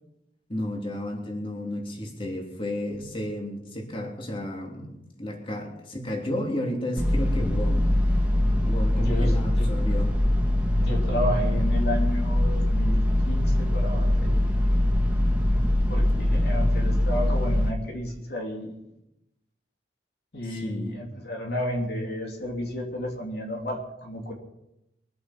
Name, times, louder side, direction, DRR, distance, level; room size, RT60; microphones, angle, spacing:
voice 1, 0.5-7.9 8.6-10.1 16.3-16.5 20.4-21.0, left 1 dB, 30° left, 0 dB, 3.2 m, -32 dB
sound 1, 7.0-17.7, left 1 dB, 10° right, 2.1 m, -22 dB
voice 2, 9.0-9.7 10.8-14.4 15.9-18.8 20.3-24.3, equal, 65° left, 0 dB, 2.9 m, -32 dB
23.5 x 8.5 x 6.1 m, 0.87 s
head